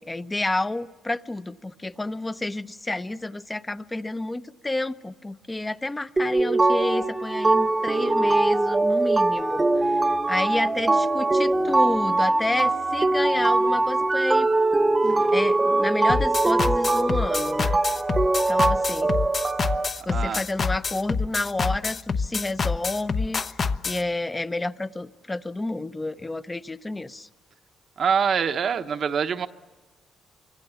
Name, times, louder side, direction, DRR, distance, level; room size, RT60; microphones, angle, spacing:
voice 1, 0.0-14.5 15.0-17.8 18.5-19.1 20.1-23.4 23.8-27.3, left 2 dB, 15° left, 13 dB, 0.8 m, -30 dB
sound 1, 6.2-19.9, right 2 dB, 20° right, 1.1 m, -22 dB
sound 2, 16.1-24.0, left 4 dB, 40° left, 1.0 m, -26 dB
voice 2, 20.1-20.4 28.0-29.5, right 7 dB, 55° right, 9 dB, 1.1 m, -24 dB
28.0 x 25.0 x 7.1 m, 1.3 s
cardioid pair, 90°, 0 cm